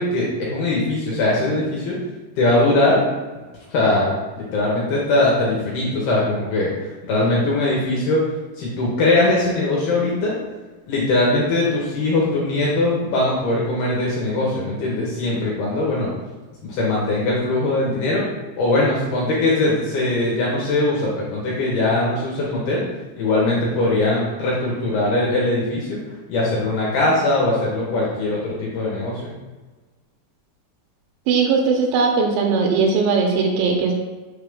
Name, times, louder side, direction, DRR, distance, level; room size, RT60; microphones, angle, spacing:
voice 1, 0.0-2.0 2.4-3.1 3.7-8.2 8.6-10.4 10.9-16.1 16.6-18.2 18.6-22.8 23.2-26.0 26.3-29.3, left 2 dB, 70° left, -4 dB, 2.5 m, -21 dB
voice 2, 31.3-33.9, right 4 dB, 85° right, 1 dB, 2.8 m, -19 dB
6.8 x 4.9 x 3.6 m, 1.3 s
omnidirectional pair, 5.5 m